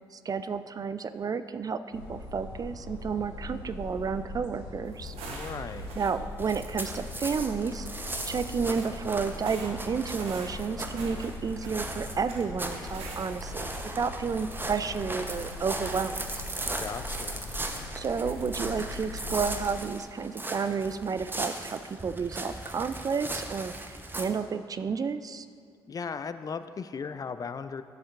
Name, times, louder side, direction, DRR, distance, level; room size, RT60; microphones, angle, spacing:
voice 1, 0.1-5.1 6.0-16.2 17.9-25.5, right 5 dB, 40° right, 12 dB, 0.4 m, -31 dB
sound 1, 1.9-19.7, left 2 dB, 85° left, 0.8 m, -41 dB
sound 2, 4.9-7.1 7.4-7.6 8.0-8.9 9.5-14.7 15.0-17.4 17.7-18.0 18.3-18.9, right 3 dB, 75° right, 1.0 m, -46 dB
voice 2, 5.2-5.9 16.8-17.5 25.9-27.8, left 5 dB, 40° left, 12 dB, 0.4 m, -37 dB
sound 3, 6.4-24.2, right 2 dB, 20° right, 0.9 m, -38 dB
10.5 x 7.0 x 2.5 m, 2.2 s
hypercardioid pair, 45°, 10 cm